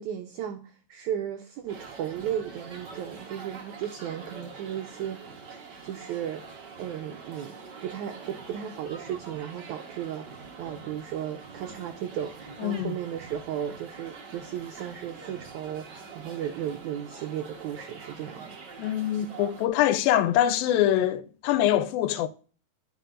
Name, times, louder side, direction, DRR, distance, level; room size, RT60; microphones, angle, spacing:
voice 1, 0.0-5.2 5.5-18.6, right 10 dB, 90° right, 1.7 m, -35 dB
sound 1, 1.7-19.7, right 5 dB, 65° right, 1.0 m, -45 dB
voice 2, 12.6-12.9 18.8-22.3, left 12 dB, 90° left, 2.4 m, -24 dB
14.0 x 5.1 x 2.5 m
omnidirectional pair, 4.0 m